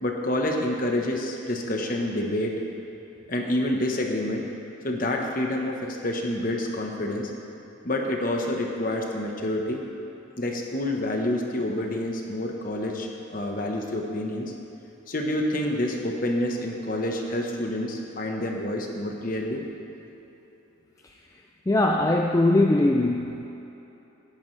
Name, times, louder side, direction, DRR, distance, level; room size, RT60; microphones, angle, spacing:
voice 1, 0.0-2.5 3.3-4.4 4.8-7.3 7.8-9.8 10.4-13.1 13.3-14.5 15.1-19.6, left 1 dB, 40° left, 1 dB, 1.1 m, -28 dB
voice 2, 21.7-23.5, left 2 dB, 15° left, 1 dB, 0.3 m, -21 dB
17.0 x 9.9 x 3.3 m, 3.0 s
head